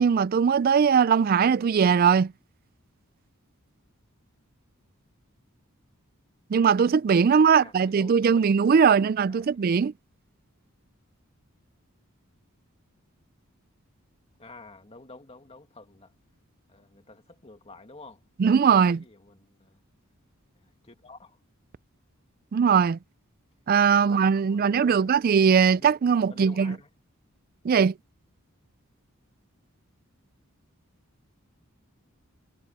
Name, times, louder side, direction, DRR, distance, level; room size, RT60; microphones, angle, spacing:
voice 1, 0.0-2.3 6.5-9.9 18.4-19.0 22.5-23.0 23.7-26.8 27.6-27.9, right 6 dB, 40° right, 0.3 m, -20 dB
voice 2, 7.3-9.6 14.4-16.1 16.7-18.2 18.9-19.8 20.6-21.4 24.0-25.1 25.6-25.9 26.3-26.9, left 3 dB, 30° left, 2.4 m, -50 dB
head